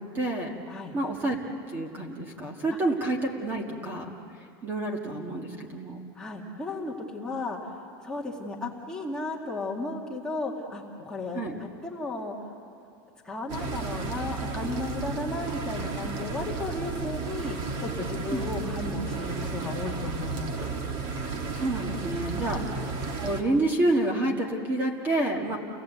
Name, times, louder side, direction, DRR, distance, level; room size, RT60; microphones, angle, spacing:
voice 1, 0.0-0.5 0.9-1.4 1.7-4.1 4.6-6.0 11.3-11.5 18.3-18.5 21.2-25.6, right 2 dB, 15° right, 1 dB, 1.7 m, -29 dB
voice 2, 6.2-7.8 8.0-12.4 13.2-20.7 22.3-22.6, left 2 dB, 5° left, -2 dB, 1.9 m, -34 dB
sound 1, 13.5-23.4, right 4 dB, 35° right, 1.7 m, -33 dB
30.0 x 18.5 x 8.2 m, 2.5 s
supercardioid pair, 180°, 12 cm